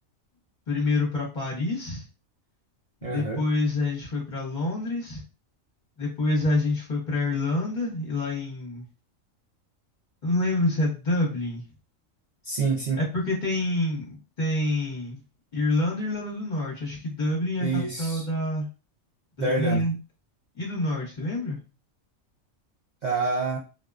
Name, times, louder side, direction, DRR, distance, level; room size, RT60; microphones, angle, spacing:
voice 1, 0.7-2.0 3.0-5.2 6.0-8.8 10.2-11.6 13.0-14.0 14.4-15.2 15.5-18.7 19.4-19.9 20.5-21.6, left 2 dB, 40° left, -3 dB, 1.0 m, -27 dB
voice 2, 3.0-3.4 12.4-13.0 17.6-18.2 19.4-19.9 23.0-23.6, right 3 dB, 85° right, -3 dB, 0.4 m, -27 dB
2.5 x 2.2 x 2.3 m, 0.31 s
omnidirectional pair, 1.4 m